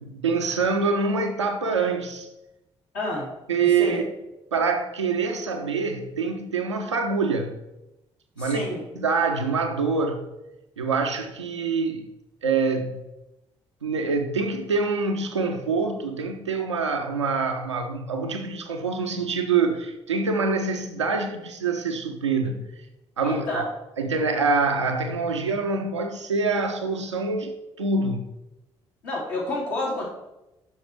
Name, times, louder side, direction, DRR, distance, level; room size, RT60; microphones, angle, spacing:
voice 1, 0.0-2.3 3.5-4.0 4.5-7.6 8.4-8.7 8.9-10.2 10.8-12.1 12.4-13.0 13.8-22.6 23.2-23.6 24.0-28.3, right 4 dB, 85° right, 4 dB, 0.6 m, -25 dB
voice 2, 2.9-3.3 3.8-4.0 8.4-8.8 23.2-23.7 29.0-30.0, left 2 dB, 65° left, -5 dB, 3.5 m, -29 dB
9.8 x 6.4 x 4.5 m, 0.94 s
figure-of-eight pair, 40°, 15 cm